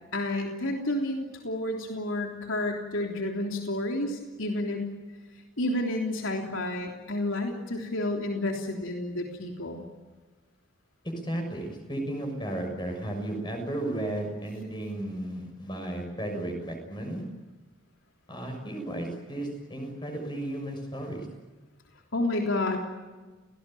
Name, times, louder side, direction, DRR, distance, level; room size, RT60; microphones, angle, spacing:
voice 1, 0.1-4.9 5.6-9.8 22.1-22.8, left 1 dB, 80° left, 2 dB, 3.4 m, -30 dB
voice 2, 11.2-17.2 18.3-21.2, right 1 dB, 20° left, 4 dB, 6.7 m, -34 dB
30.0 x 19.0 x 9.3 m, 1.3 s
head